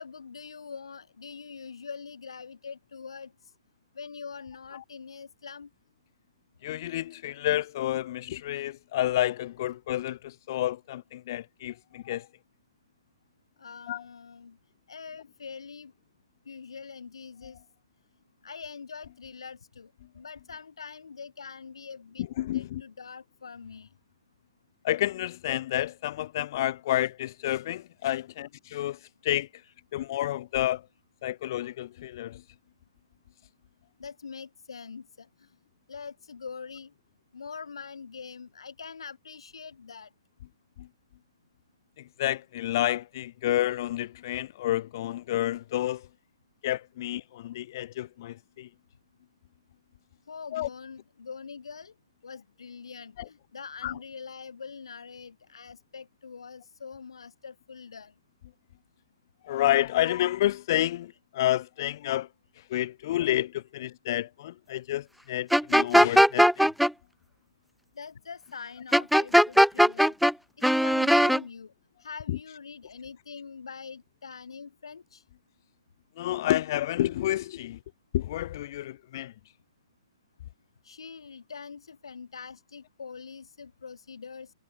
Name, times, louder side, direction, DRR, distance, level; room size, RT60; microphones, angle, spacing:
voice 1, 0.0-3.3 3.9-5.7 13.6-14.6 14.9-15.9 16.4-17.6 18.4-22.3 22.5-23.9 34.0-35.5 35.9-36.9 37.3-40.1 50.3-51.9 52.2-58.1 67.9-70.1 70.6-71.7 72.0-75.2 80.8-84.5, left 5 dB, 90° left, 4.3 m, -43 dB
voice 2, 6.6-12.3 13.9-14.0 22.4-22.8 24.8-29.5 29.9-30.8 31.2-32.4 42.2-46.1 46.6-48.7 50.5-50.7 53.8-54.0 59.4-62.3 62.7-66.5 72.3-72.4 76.2-77.8 78.1-79.3, left 13 dB, 50° left, 1.0 m, -29 dB
sound 1, 65.5-66.9 68.9-70.3 70.6-71.4, equal, ahead, 0.4 m, -19 dB
hypercardioid pair, 150°, 3 cm